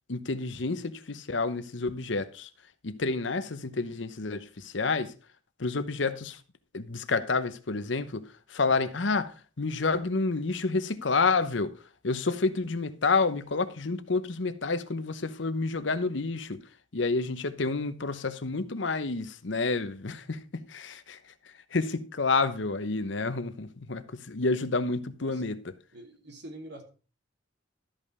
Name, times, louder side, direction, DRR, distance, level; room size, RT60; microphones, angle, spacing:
voice 1, 0.1-2.5 2.8-5.1 5.6-6.4 6.7-8.2 8.5-9.3 9.6-11.7 12.0-16.6 16.9-21.2 21.7-25.7, left 3 dB, 70° left, 0.9 m, -29 dB
voice 2, 25.9-26.8, right 1 dB, 60° right, 2.4 m, -45 dB
13.0 x 5.5 x 4.9 m
head